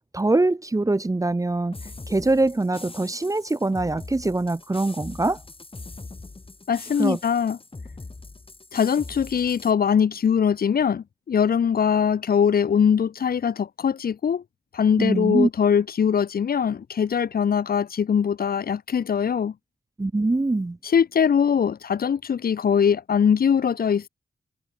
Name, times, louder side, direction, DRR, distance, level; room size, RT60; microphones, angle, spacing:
voice 1, 0.1-1.8 2.1-5.4 7.0-7.2 15.0-15.5 20.0-20.8, right 2 dB, 20° right, 0.8 m, -23 dB
sound 1, 1.7-9.7, left 3 dB, 35° left, 5.6 m, -41 dB
voice 2, 6.7-7.6 8.7-14.4 14.7-19.5 20.8-24.1, left 7 dB, 65° left, 0.8 m, -22 dB
cardioid pair, 65°, 17 cm